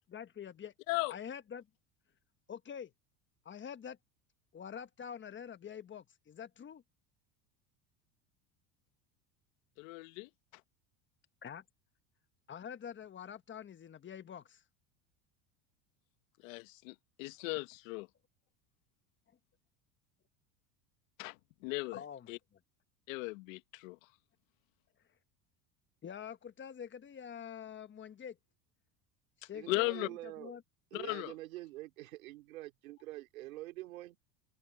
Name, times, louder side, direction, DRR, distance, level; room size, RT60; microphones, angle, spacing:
voice 1, 0.1-0.7 1.1-1.7 2.5-2.9 3.4-4.0 4.5-6.8 11.4-11.6 12.5-14.6 21.9-22.6 26.0-28.4 29.4-30.6, left 8 dB, 30° left, 1.3 m, -46 dB
voice 2, 9.8-10.3 16.4-18.1 21.2-21.4 21.6-22.0 22.3-22.4 23.1-24.0 29.7-30.1 30.9-31.3, left 23 dB, 75° left, 1.4 m, -37 dB
voice 3, 29.5-30.6 30.9-34.2, right 17 dB, 90° right, 3.0 m, -46 dB
open air
supercardioid pair, 105°, 40 cm